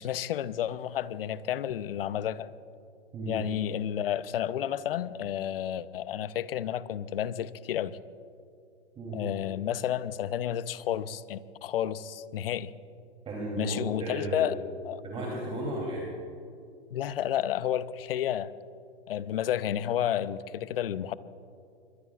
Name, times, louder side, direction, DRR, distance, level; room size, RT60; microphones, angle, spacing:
voice 1, 0.0-2.5 3.3-8.0 9.1-12.7 13.6-14.5 14.8-15.0 16.9-18.5 19.1-21.1, left 10 dB, 60° left, 15 dB, 0.7 m, -31 dB
voice 2, 13.2-14.5 15.0-16.0, right 1 dB, 15° right, -3 dB, 3.1 m, -34 dB
24.5 x 22.0 x 2.4 m, 2.5 s
hypercardioid pair, 135°, 33 cm